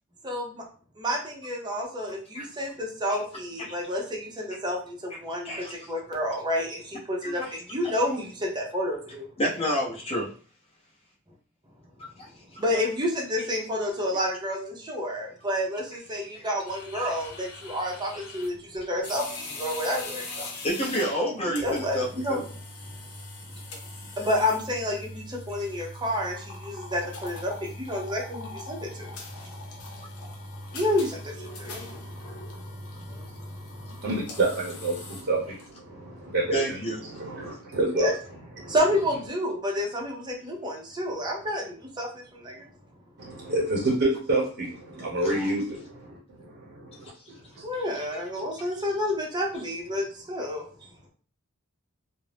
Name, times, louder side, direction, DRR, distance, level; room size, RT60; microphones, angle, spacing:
voice 1, 1.0-9.3 12.6-20.2 21.6-22.5 24.2-29.2 30.7-34.1 35.9-36.3 37.4-37.5 37.9-38.1 38.6-42.7 47.6-50.6, left 1 dB, 20° right, -1 dB, 0.6 m, -30 dB
voice 2, 5.4-5.9 7.2-7.5 9.4-10.3 12.2-12.6 16.3-16.5 16.9-17.1 20.6-22.4 36.5-37.0 45.2-45.5, equal, 30° left, -4 dB, 0.7 m, -29 dB
sound 1, 16.7-35.7, left 2 dB, 80° left, 0.7 m, -41 dB
voice 3, 34.0-38.1 38.6-38.7 43.2-47.1 47.6-47.7, right 2 dB, 50° right, -4 dB, 0.8 m, -28 dB
2.5 x 2.0 x 3.3 m, 0.41 s
head